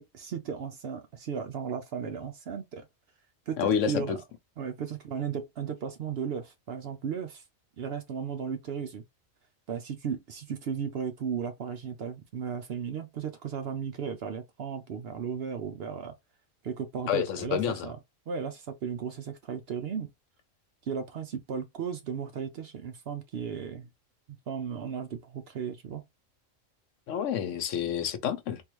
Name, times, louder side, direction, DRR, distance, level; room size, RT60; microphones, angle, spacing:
voice 1, 0.0-2.9 3.5-4.1 4.6-7.4 7.8-9.0 9.7-16.1 16.6-18.0 18.3-20.1 20.8-23.9 24.5-26.0, right 7 dB, 60° right, 0.7 m, -35 dB
voice 2, 3.6-4.2 17.1-17.9 27.1-28.6, left 8 dB, 75° left, 1.0 m, -29 dB
3.6 x 2.4 x 3.0 m
omnidirectional pair, 1.4 m